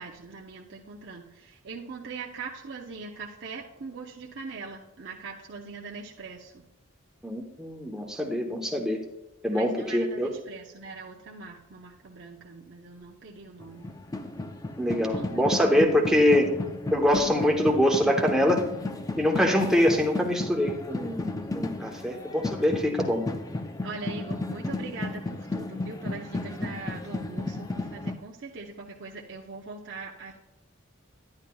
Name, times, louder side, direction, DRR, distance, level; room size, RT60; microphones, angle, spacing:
voice 1, 0.0-6.6 9.5-13.9 15.1-15.8 21.9-22.2 23.8-30.3, right 4 dB, 60° right, -1 dB, 0.6 m, -41 dB
voice 2, 7.2-9.0 9.4-10.3 14.8-16.6 16.9-18.6 19.2-23.2, left 1 dB, 5° right, 0 dB, 0.8 m, -24 dB
sound 1, 13.6-28.2, left 2 dB, 15° left, 0.3 m, -34 dB
10.5 x 10.0 x 2.3 m, 0.95 s
head